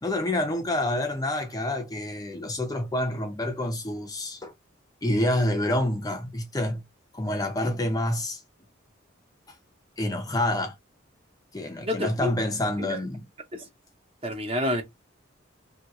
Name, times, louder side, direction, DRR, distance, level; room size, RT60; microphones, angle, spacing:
voice 1, 0.0-4.5 5.0-6.8 7.1-8.4 9.5-9.6 10.0-10.8 11.5-13.2, left 1 dB, 20° left, 0.5 m, -27 dB
voice 2, 11.8-12.3 12.9-13.0 13.5-13.7 14.2-14.8, left 1 dB, 30° right, 0.6 m, -28 dB
2.7 x 2.7 x 2.8 m
head